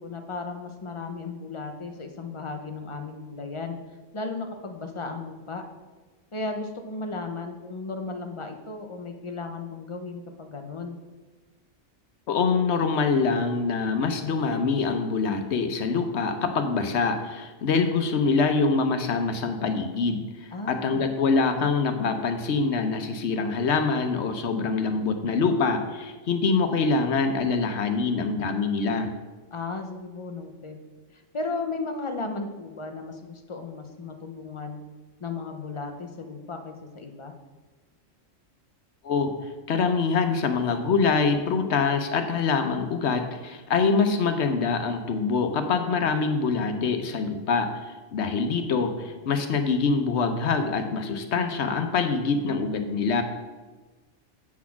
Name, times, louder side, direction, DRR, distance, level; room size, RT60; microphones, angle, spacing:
voice 1, 0.0-3.8 4.1-5.6 6.3-11.0 20.5-21.1 29.5-30.9 31.1-34.8 35.2-37.3, left 3 dB, 30° left, 5 dB, 0.6 m, -35 dB
voice 2, 12.3-29.1 39.0-39.3 39.7-47.7 48.1-53.2, left 4 dB, 65° left, 7 dB, 1.0 m, -25 dB
8.4 x 4.2 x 5.7 m, 1.2 s
omnidirectional pair, 1.3 m